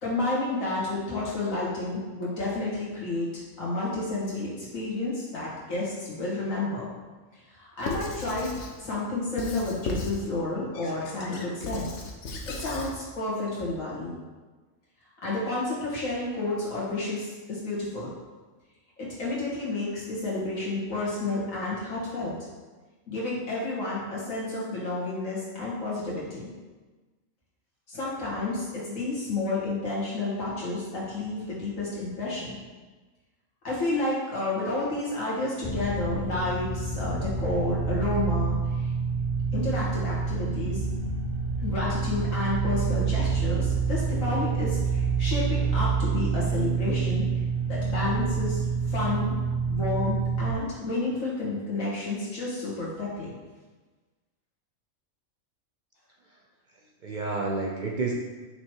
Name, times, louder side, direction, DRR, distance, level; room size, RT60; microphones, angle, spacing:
voice 1, 0.0-3.3 3.6-6.9 7.5-8.5 8.8-12.0 12.4-14.1 15.2-18.1 19.0-22.3 23.1-26.4 27.9-32.6 33.6-38.9 39.5-40.8 41.6-47.3 47.7-49.3 49.7-53.3, left 2 dB, 80° left, -7 dB, 2.2 m, -30 dB
Squeak / Writing, 7.8-8.8 9.4-10.3 10.7-12.9, left 2 dB, 65° left, 1.0 m, -36 dB
sound 1, 35.6-50.5, right 5 dB, 35° left, 0.4 m, -27 dB
voice 2, 56.7-58.1, right 3 dB, 55° right, -1 dB, 0.5 m, -31 dB
6.6 x 3.2 x 4.5 m, 1.3 s
omnidirectional pair, 1.4 m